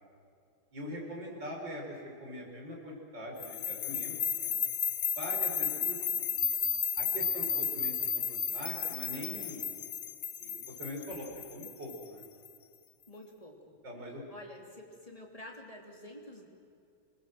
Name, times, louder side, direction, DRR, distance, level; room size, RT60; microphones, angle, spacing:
voice 1, 0.7-4.6 5.2-6.2 7.0-9.7 10.4-12.3 13.8-14.2, equal, 60° right, -1 dB, 5.8 m, -42 dB
sound 1, 3.4-12.5, left 7 dB, 50° left, 1.4 m, -33 dB
voice 2, 13.1-13.7 14.3-16.5, left 1 dB, 15° left, 0 dB, 3.1 m, -49 dB
26.5 x 20.0 x 7.8 m, 2.5 s
omnidirectional pair, 2.2 m